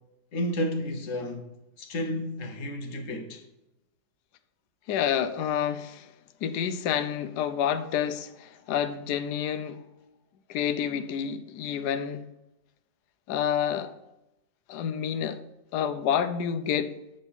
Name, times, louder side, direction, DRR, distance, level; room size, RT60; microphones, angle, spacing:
voice 1, 0.3-1.4 1.8-3.4, equal, 50° left, 1.2 m, -31 dB
voice 2, 4.9-6.1 6.4-9.8 10.5-12.2 13.3-13.9 14.7-15.4 15.7-16.9, left 8 dB, 70° left, 1.1 m, -28 dB
8.7 x 3.9 x 7.1 m
omnidirectional pair, 1.9 m